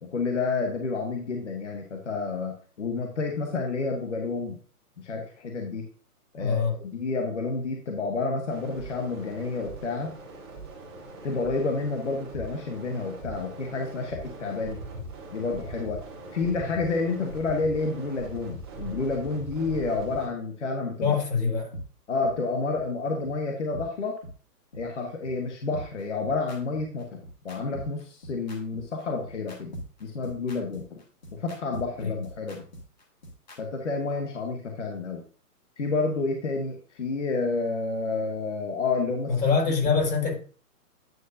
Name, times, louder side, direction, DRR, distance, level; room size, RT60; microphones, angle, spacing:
voice 1, 0.0-4.6 5.0-5.9 6.3-10.2 11.2-14.8 15.3-16.0 16.3-21.2 22.1-24.2 24.7-27.2 27.4-29.7 30.0-31.0 31.3-32.7 33.6-35.2 35.8-39.3, left 3 dB, 50° left, 1.4 m, -29 dB
voice 2, 6.4-6.8 21.0-21.7 32.0-32.2 39.3-40.3, left 5 dB, 90° left, 4.5 m, -24 dB
sound 1, 8.5-20.3, right 2 dB, 15° right, 1.2 m, -41 dB
sound 2, 21.7-21.8 22.2-22.3 22.7-22.8 23.2-23.3 23.7-23.8 24.2-24.3 24.7-24.8 25.2-25.3 25.7-33.6, equal, 30° left, 1.4 m, -40 dB
9.4 x 6.3 x 2.6 m
hypercardioid pair, 180°, 46 cm